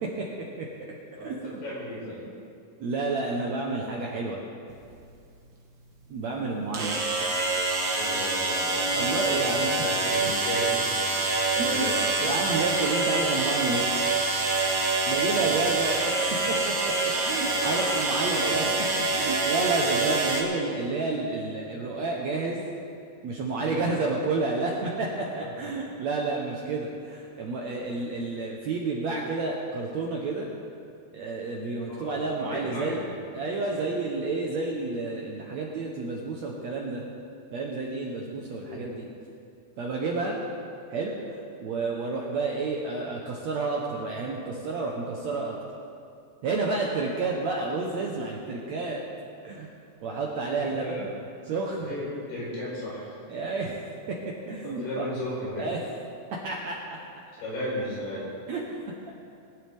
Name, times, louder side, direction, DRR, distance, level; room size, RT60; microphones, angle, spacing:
voice 1, 1.2-2.2 7.9-11.0 11.5-12.0 15.2-15.6 17.6-18.7 23.5-23.8 25.4-25.7 31.9-33.0 33.7-33.9 38.7-38.9 50.5-51.1 51.8-53.1 54.6-55.7 57.4-58.3, left 1 dB, 85° left, -7 dB, 6.5 m, -35 dB
voice 2, 2.8-4.4 6.1-7.0 8.9-9.8 11.6-11.9 12.2-13.9 15.0-18.7 19.1-22.6 23.2-30.5 31.1-33.0 33.3-37.0 37.5-39.1 39.8-40.4 40.9-45.6 46.4-49.0 49.4-49.7 50.0-51.1 51.4-51.9 53.3-53.8 54.1-55.0 55.6-55.8 56.3-57.0 58.5-58.8, right 3 dB, 70° right, -1 dB, 1.7 m, -30 dB
sound 1, 4.7-4.8 6.7-20.4, right 3 dB, 45° right, 1.6 m, -26 dB
22.0 x 11.0 x 3.5 m, 2.5 s
omnidirectional pair, 4.5 m